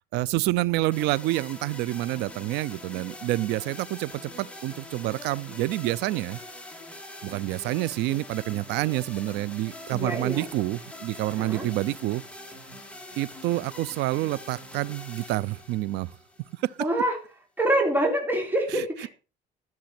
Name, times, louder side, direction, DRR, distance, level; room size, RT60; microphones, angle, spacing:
voice 1, 0.1-6.4 7.2-12.2 13.2-16.1 16.6-16.8 18.7-18.8, right 17 dB, 90° right, 0.6 m, -28 dB
sound 1, 0.9-16.9, left 1 dB, 5° left, 3.2 m, -44 dB
voice 2, 9.9-10.5 11.4-11.7 16.8-17.2 17.6-19.1, right 1 dB, 10° right, 3.8 m, -25 dB
13.5 x 7.5 x 5.9 m
cardioid pair, 110°, 17 cm